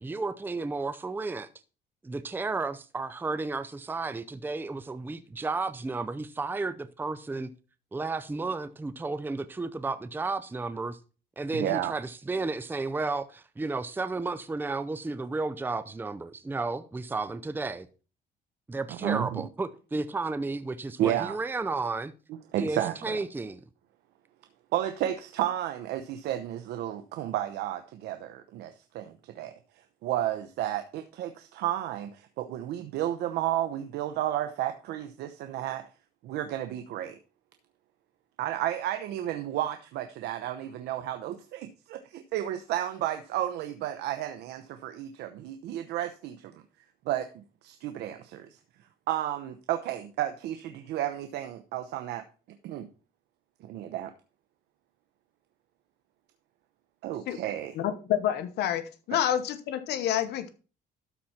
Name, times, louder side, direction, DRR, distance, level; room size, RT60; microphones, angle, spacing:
voice 1, 0.0-1.5 2.0-7.5 7.9-11.0 11.4-17.9 18.7-22.1 22.6-23.6, right 3 dB, 10° right, 0.6 m, -33 dB
voice 2, 11.5-11.9 19.0-19.5 21.0-21.4 22.5-23.2 24.7-29.5 30.0-35.8 36.2-37.2 38.4-46.6 47.1-47.3 47.6-48.5 49.1-52.2 52.6-52.9 53.6-54.1 57.0-57.8, right 12 dB, 80° right, 0.9 m, -32 dB
voice 3, 57.8-58.8 59.1-60.5, left 10 dB, 75° left, 1.1 m, -28 dB
12.5 x 4.3 x 5.8 m
cardioid pair, 110°, 17 cm